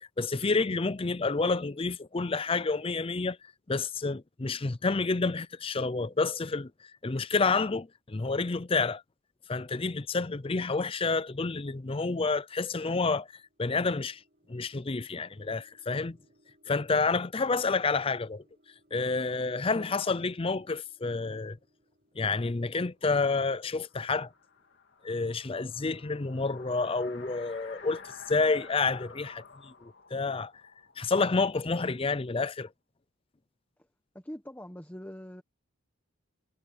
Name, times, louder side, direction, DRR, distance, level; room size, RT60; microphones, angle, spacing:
voice 1, 0.2-3.4 3.7-9.0 9.5-14.2 14.5-16.2 16.7-18.4 18.9-21.6 22.1-24.3 25.0-30.5 31.0-32.7, left 4 dB, 25° left, 0.5 m, -29 dB
sound 1, 13.0-24.8, equal, 40° right, 7.6 m, -69 dB
sound 2, 23.6-32.1, left 5 dB, 50° left, 3.2 m, -52 dB
voice 2, 34.1-35.4, equal, 10° left, 1.3 m, -43 dB
head